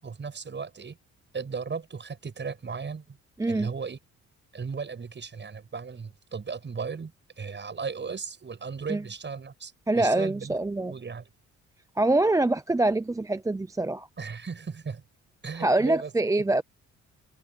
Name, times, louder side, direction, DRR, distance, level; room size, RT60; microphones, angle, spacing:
voice 1, 0.0-1.0 1.3-3.2 3.5-4.0 4.5-7.1 7.4-10.5 10.9-11.3 14.2-15.0 15.4-16.1, right 5 dB, 35° right, 7.9 m, -36 dB
voice 2, 3.4-3.7 8.9-9.0 9.9-10.9 12.0-14.1 15.6-16.6, right 2 dB, 10° right, 0.6 m, -24 dB
cardioid pair, 90°, 30 cm